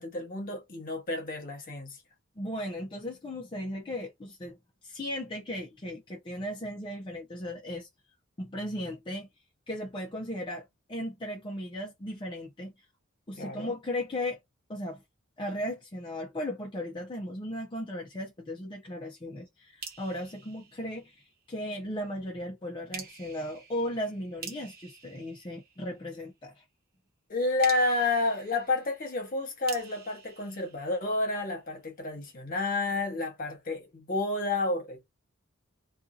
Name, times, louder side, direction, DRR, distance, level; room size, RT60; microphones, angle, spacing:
voice 1, 0.0-2.0 13.4-13.8 27.3-35.1, left 2 dB, 45° left, 1.1 m, -30 dB
voice 2, 2.4-4.6 4.8-7.9 8.4-9.3 9.7-12.7 13.3-14.4 14.7-15.0 15.4-26.6, left 1 dB, 25° left, 0.5 m, -36 dB
sound 1, 19.8-21.5 22.9-26.2 27.6-31.5, right 6 dB, 50° right, 0.9 m, -47 dB
2.6 x 2.3 x 2.4 m
head